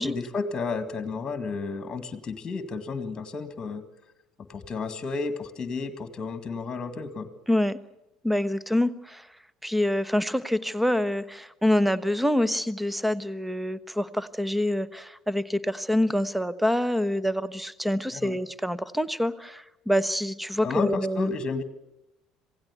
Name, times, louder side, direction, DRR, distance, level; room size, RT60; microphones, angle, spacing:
voice 1, 0.0-3.8 4.5-7.3 18.1-18.4 20.6-21.6, left 4 dB, 30° left, 11 dB, 2.0 m, -32 dB
voice 2, 7.5-7.8 8.2-9.3 9.6-21.3, left 1 dB, 5° right, 18 dB, 1.1 m, -26 dB
27.0 x 17.0 x 8.3 m, 0.93 s
figure-of-eight pair, 60°, 3 cm